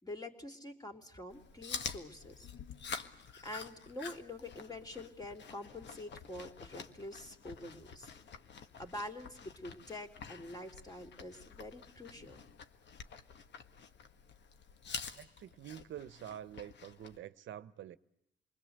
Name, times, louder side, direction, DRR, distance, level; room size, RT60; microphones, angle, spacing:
voice 1, 0.0-2.5 3.4-8.1 8.8-12.4, left 1 dB, 20° left, 3.3 m, -46 dB
Chewing mastication, 1.3-17.2, left 5 dB, 60° left, 1.7 m, -48 dB
voice 2, 15.1-18.0, right 11 dB, 70° right, 1.0 m, -47 dB
28.0 x 21.0 x 8.0 m
cardioid pair, 90°, 20 cm